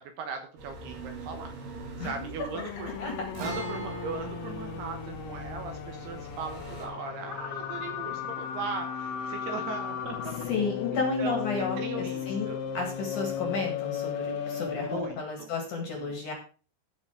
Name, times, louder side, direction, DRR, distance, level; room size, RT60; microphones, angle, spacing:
voice 1, 0.0-1.5 2.0-3.0 3.4-12.6 14.7-15.5 16.0-16.1, right 5 dB, 70° right, 5 dB, 2.8 m, -39 dB
sound 1, 0.6-6.9, right 2 dB, 50° right, 3.6 m, -44 dB
sound 2, 2.5-15.3, left 9 dB, 70° left, 2.7 m, -36 dB
Guitar, 3.3-11.0 11.2-11.3 13.3-13.5, right 3 dB, 85° right, 7.6 m, -43 dB
voice 2, 10.5-16.3, left 4 dB, 50° left, 2 dB, 2.8 m, -32 dB
14.5 x 5.9 x 4.9 m, 0.38 s
omnidirectional pair, 5.5 m